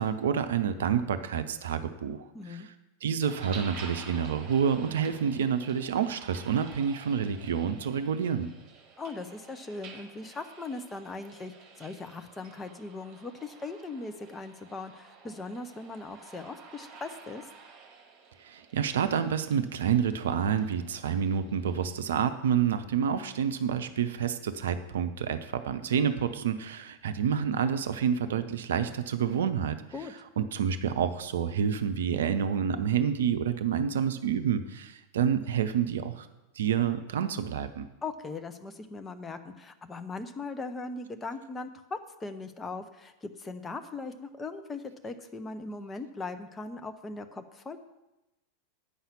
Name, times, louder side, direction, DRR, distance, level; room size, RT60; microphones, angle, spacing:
voice 1, 0.0-2.7 3.0-8.5 18.4-29.8 30.4-36.3 36.6-37.9, right 8 dB, 60° right, 10 dB, 0.6 m, -28 dB
voice 2, 2.3-2.7 9.0-17.5 29.9-30.1 38.0-47.8, left 3 dB, 15° left, 7 dB, 0.7 m, -39 dB
sound 1, 3.2-21.9, right 5 dB, 35° right, 1.5 m, -50 dB
8.6 x 5.6 x 7.0 m, 0.98 s
figure-of-eight pair, 90°, 0 cm